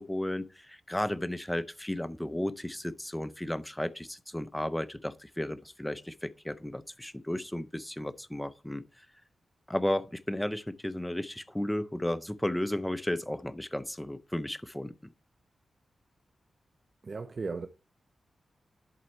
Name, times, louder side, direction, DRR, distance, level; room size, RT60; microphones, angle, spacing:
voice 1, 0.0-9.1 9.7-15.1, left 1 dB, 5° left, 0.6 m, -34 dB
voice 2, 17.0-17.7, right 4 dB, 45° right, 0.6 m, -36 dB
11.0 x 4.0 x 4.4 m
wide cardioid pair, 95°, 0 cm